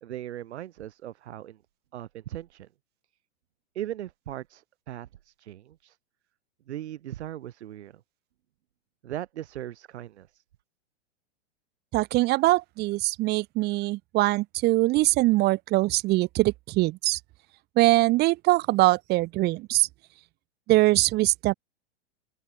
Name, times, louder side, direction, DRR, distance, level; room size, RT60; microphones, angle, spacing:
voice 1, 0.0-1.6 1.9-2.7 3.7-6.0 6.7-7.9 9.0-10.4, right 12 dB, 75° right, 1.1 m, -38 dB
voice 2, 11.9-17.2 17.8-19.9 20.7-21.5, right 19 dB, 30° right, 0.7 m, -22 dB
open air
hypercardioid pair, 120°, 34 cm